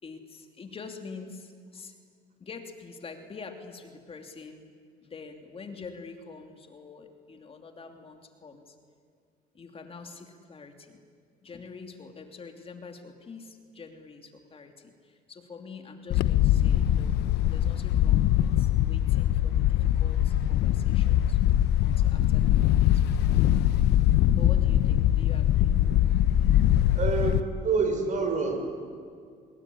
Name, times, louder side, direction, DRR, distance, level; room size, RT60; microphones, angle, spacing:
voice 1, 0.0-2.0 2.4-4.7 5.0-8.8 9.5-11.0 11.4-17.1 17.5-21.4 21.8-23.3 24.3-25.8, left 4 dB, 35° left, 5 dB, 2.9 m, -45 dB
Wind, 16.1-27.4, left 12 dB, 80° left, 0.9 m, -22 dB
voice 2, 26.9-28.6, right 4 dB, 45° right, 5 dB, 6.2 m, -27 dB
27.0 x 21.5 x 9.9 m, 2.2 s
cardioid pair, 110°, 17 cm